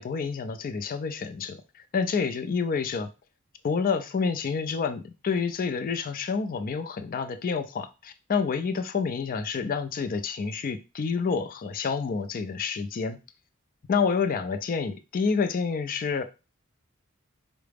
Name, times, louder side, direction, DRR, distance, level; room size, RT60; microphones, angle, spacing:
voice 1, 0.0-3.1 3.6-13.2 13.9-16.2, left 5 dB, 40° left, 9 dB, 0.4 m, -28 dB
4.7 x 2.0 x 3.4 m, 0.29 s
head